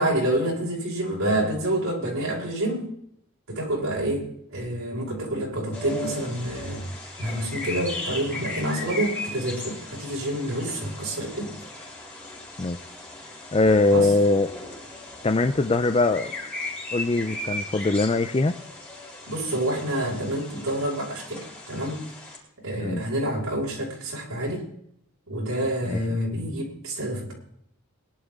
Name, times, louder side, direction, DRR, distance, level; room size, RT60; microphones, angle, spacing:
voice 1, 0.0-2.9 3.5-6.8 7.2-11.5 13.9-14.1 19.3-22.0 22.6-24.6 25.3-27.3, right 1 dB, 80° right, -3 dB, 6.0 m, -28 dB
sound 1, 5.7-22.4, left 2 dB, 10° left, 4.2 m, -37 dB
voice 2, 13.5-14.5 15.2-16.3 16.9-18.6 22.8-23.0 25.9-26.0, left 2 dB, 25° left, 9 dB, 0.5 m, -21 dB
20.5 x 11.0 x 3.7 m, 0.70 s
head